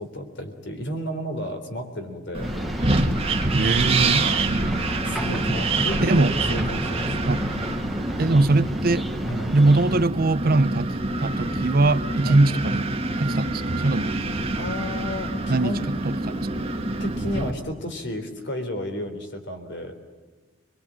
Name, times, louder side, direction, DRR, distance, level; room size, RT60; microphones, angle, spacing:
voice 1, 0.0-2.5 5.0-7.1 9.2-9.5 12.2-12.4 14.5-15.8 17.0-19.9, left 1 dB, 55° left, 3.8 m, -32 dB
Wind, 2.3-17.5, right 2 dB, 25° right, 1.7 m, -26 dB
sound 1, 2.4-10.0, equal, ahead, 1.2 m, -33 dB
voice 2, 3.5-4.8 6.0-6.3 7.3-7.5 8.2-9.1 9.5-10.9 11.2-12.9 13.2-14.2 15.5-15.7 16.0-16.5, right 2 dB, 45° right, 0.7 m, -21 dB
24.0 x 23.0 x 8.7 m
head